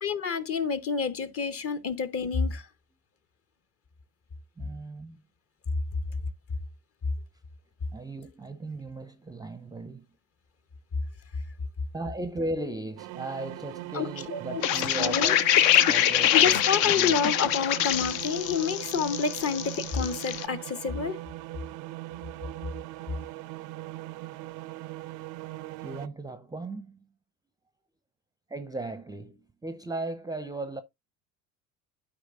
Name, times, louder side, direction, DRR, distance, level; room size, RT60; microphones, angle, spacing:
voice 1, 0.0-2.7 13.9-15.3 16.3-21.2, left 6 dB, 30° left, 1.0 m, -29 dB
voice 2, 4.6-5.2 7.9-10.1 11.9-15.5 15.9-17.2 25.8-27.1 28.5-30.8, right 2 dB, 10° right, 0.6 m, -37 dB
sound 1, 13.0-26.1, right 17 dB, 45° right, 0.5 m, -40 dB
sound 2, 14.6-20.4, left 11 dB, 50° left, 0.7 m, -24 dB
12.5 x 4.7 x 2.4 m
figure-of-eight pair, 65°, 44 cm